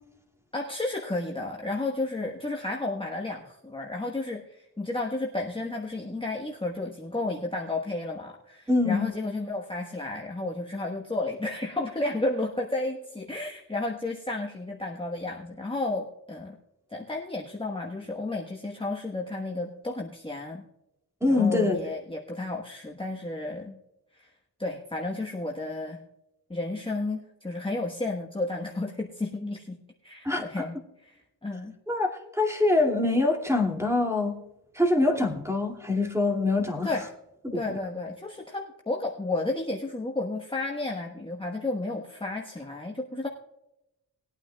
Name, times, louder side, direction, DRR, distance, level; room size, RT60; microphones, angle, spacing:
voice 1, 0.5-16.6 16.9-20.6 21.3-23.8 24.1-24.3 24.6-26.0 26.5-29.8 30.0-31.7 36.8-37.1 37.5-43.3, left 2 dB, 15° left, 0 dB, 1.2 m, -32 dB
voice 2, 8.7-9.1 21.2-21.8 30.2-30.7 31.9-34.3 34.7-36.9 37.4-37.6, left 2 dB, 5° right, 1 dB, 2.3 m, -24 dB
20.5 x 8.9 x 2.3 m, 0.89 s
cardioid pair, 65°, 40 cm